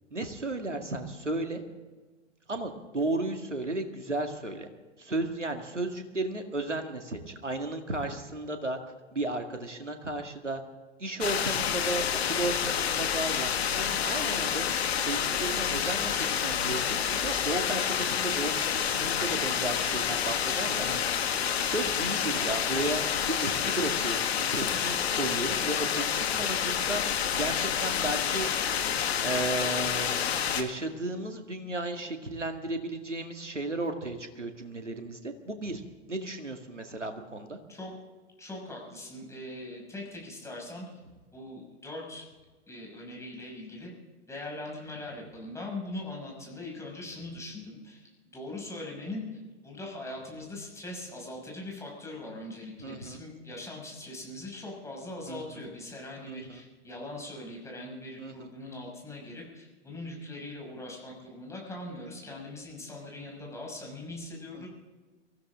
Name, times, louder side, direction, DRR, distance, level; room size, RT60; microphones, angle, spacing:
voice 1, 0.1-1.6 2.5-4.7 5.0-8.8 9.1-10.6 11.0-14.7 15.0-21.0 21.6-28.5 28.9-30.2 30.5-35.8 36.1-37.6 52.8-53.2 55.3-55.6 56.3-56.6 58.2-58.5 64.5-64.7, right 2 dB, 85° right, 5 dB, 2.1 m, -34 dB
sound 1, 11.2-30.6, left 8 dB, 60° left, 1.7 m, -28 dB
voice 2, 38.4-40.9 41.3-42.3 42.7-43.9 44.3-49.3 49.6-64.7, left 2 dB, 10° left, -2 dB, 6.1 m, -41 dB
24.0 x 16.0 x 3.7 m, 1.3 s
figure-of-eight pair, 100°, 35 cm